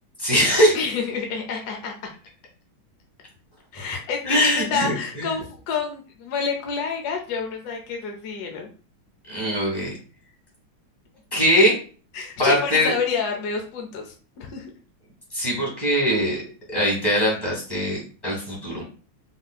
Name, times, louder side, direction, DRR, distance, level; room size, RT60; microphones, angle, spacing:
voice 1, 0.2-0.8 3.8-3.9 4.2-5.3 9.3-9.9 11.3-11.8 12.4-12.9 15.3-16.4 16.7-18.8, equal, 15° left, -4 dB, 1.3 m, -21 dB
voice 2, 0.7-1.9 3.7-8.7 12.1-14.7, left 5 dB, 65° left, 2 dB, 1.0 m, -28 dB
4.2 x 2.8 x 2.3 m, 0.38 s
omnidirectional pair, 2.2 m